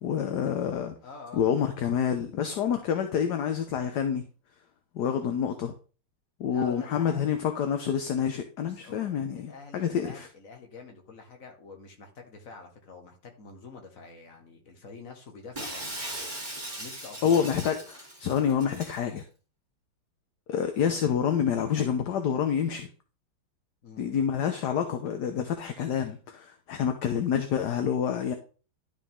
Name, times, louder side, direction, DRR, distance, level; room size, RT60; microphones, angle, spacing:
voice 1, 0.0-0.9 1.3-4.2 4.9-5.7 6.4-10.3 17.2-19.2 20.5-22.9 24.0-28.3, left 8 dB, 60° left, 1.3 m, -27 dB
voice 2, 1.0-1.5 5.0-5.4 6.5-7.2 8.6-15.9 16.8-17.6 23.8-24.1, left 4 dB, 40° left, 1.9 m, -46 dB
Shatter, 15.6-19.0, right 1 dB, 20° right, 2.9 m, -39 dB
12.0 x 5.0 x 3.7 m
omnidirectional pair, 2.3 m